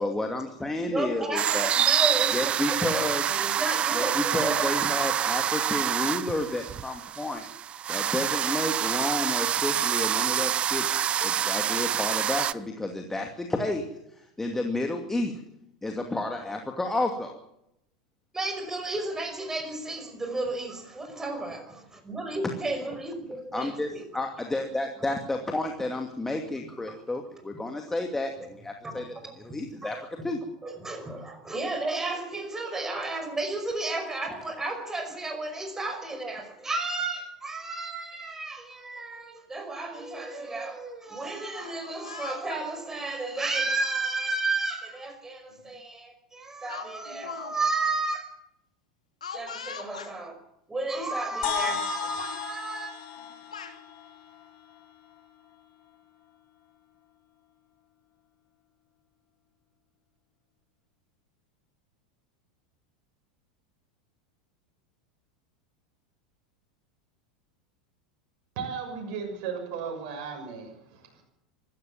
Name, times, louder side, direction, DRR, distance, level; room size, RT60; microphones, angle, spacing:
voice 1, 0.0-1.7 2.3-3.2 3.9-7.5 7.9-10.9 11.2-15.4 15.8-17.4 23.5-30.0 30.2-30.4, left 2 dB, 10° left, 3 dB, 2.4 m, -31 dB
voice 2, 0.8-3.0 3.3-4.6 18.3-24.0 26.9-27.0 28.8-29.9 30.2-30.3 30.6-48.3 49.3-50.4 50.7-52.9, right 2 dB, 10° right, 6 dB, 5.4 m, -33 dB
sound 1, 1.4-12.5, right 9 dB, 30° right, 0.8 m, -27 dB
Speech, 41.5-42.6 43.6-43.8 45.0-45.1 45.5-45.7 46.7-47.5 47.8-47.9 49.2-50.1 51.0-51.1 51.5-51.9 52.2-52.4 53.2-53.8, left 6 dB, 75° left, 2.9 m, -41 dB
sound 2, 51.4-55.2, left 11 dB, 50° left, 3.8 m, -35 dB
voice 3, 68.5-71.2, right 6 dB, 50° right, 2 dB, 6.7 m, -36 dB
26.0 x 13.5 x 7.3 m, 0.80 s
figure-of-eight pair, 85°, 4 cm